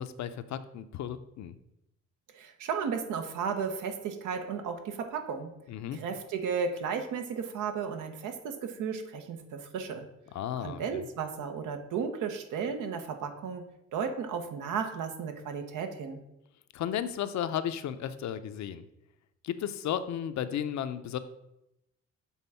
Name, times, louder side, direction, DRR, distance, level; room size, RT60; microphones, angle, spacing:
voice 1, 0.0-1.6 5.7-6.0 10.3-11.1 16.7-18.8 19.4-21.2, left 9 dB, 65° left, 11 dB, 0.6 m, -34 dB
voice 2, 2.3-5.5 5.9-10.0 10.6-16.2, right 6 dB, 80° right, 6 dB, 1.0 m, -34 dB
7.2 x 3.6 x 5.6 m, 0.86 s
cardioid pair, 90°, 30 cm